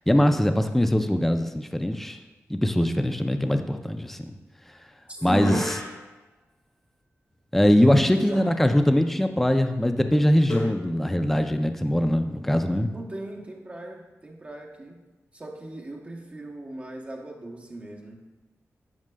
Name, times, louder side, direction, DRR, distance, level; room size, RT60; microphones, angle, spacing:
voice 1, 0.1-2.2 2.5-4.3 5.2-5.6 7.5-12.9, equal, 5° left, 7 dB, 0.3 m, -22 dB
voice 2, 5.1-5.6 7.8-8.4 12.9-15.0 15.3-18.2, right 2 dB, 25° right, 0 dB, 0.7 m, -36 dB
sound 1, 5.2-6.2 8.3-8.7 8.9-9.0 10.5-10.8, left 1 dB, 50° left, 1.4 m, -34 dB
10.5 x 6.2 x 2.2 m, 1.1 s
wide cardioid pair, 175°, 5 cm